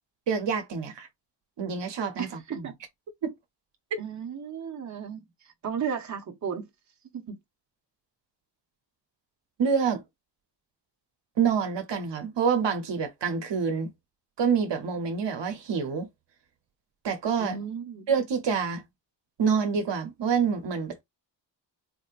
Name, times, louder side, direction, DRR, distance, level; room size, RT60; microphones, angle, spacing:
voice 1, 0.3-1.1 1.6-2.7 3.2-3.3 3.9-4.0 9.6-10.0 11.4-13.9 14.4-16.1 17.0-17.6 18.1-18.8 19.4-21.0, right 6 dB, 75° right, 1.0 m, -27 dB
voice 2, 2.2-2.8 4.0-5.2 5.6-6.7 7.1-7.4 17.4-18.1, right 7 dB, 40° right, 1.0 m, -34 dB
4.3 x 2.8 x 2.5 m
wide cardioid pair, 115°, 43 cm